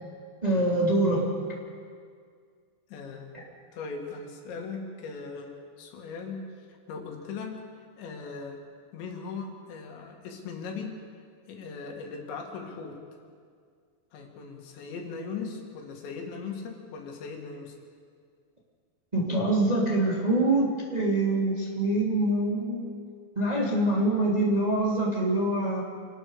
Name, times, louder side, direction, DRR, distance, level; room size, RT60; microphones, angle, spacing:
voice 1, 0.4-1.2 19.1-22.8 23.3-25.8, right 1 dB, 10° right, -3 dB, 2.0 m, -25 dB
voice 2, 2.9-3.3 3.7-11.0 11.5-13.0 14.1-17.8, left 4 dB, 85° left, 2 dB, 4.4 m, -39 dB
27.0 x 19.0 x 5.0 m, 2.1 s
omnidirectional pair, 5.0 m